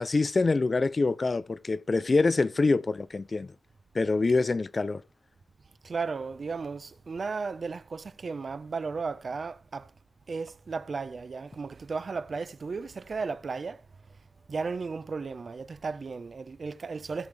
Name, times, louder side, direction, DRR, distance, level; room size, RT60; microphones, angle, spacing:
voice 1, 0.0-3.5 3.9-5.0, left 3 dB, 35° left, 0.5 m, -25 dB
voice 2, 5.8-9.9 10.3-13.8 14.5-17.3, right 4 dB, 45° right, 0.8 m, -35 dB
16.5 x 6.7 x 3.5 m
wide cardioid pair, 180°, 0 cm